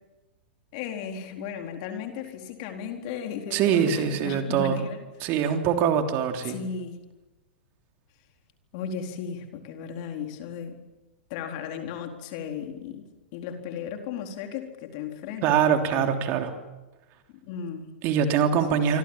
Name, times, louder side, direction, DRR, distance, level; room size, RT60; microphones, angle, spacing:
voice 1, 0.7-5.0 6.4-7.0 8.7-10.8 11.3-13.0 13.3-16.2 17.5-17.9 18.7-19.0, left 7 dB, 45° left, 4 dB, 4.3 m, -35 dB
voice 2, 3.5-4.8 5.2-6.6 15.4-16.5 18.0-19.0, right 8 dB, 35° right, 5 dB, 3.3 m, -23 dB
28.0 x 25.0 x 7.5 m, 1.1 s
figure-of-eight pair, 100°, 6 cm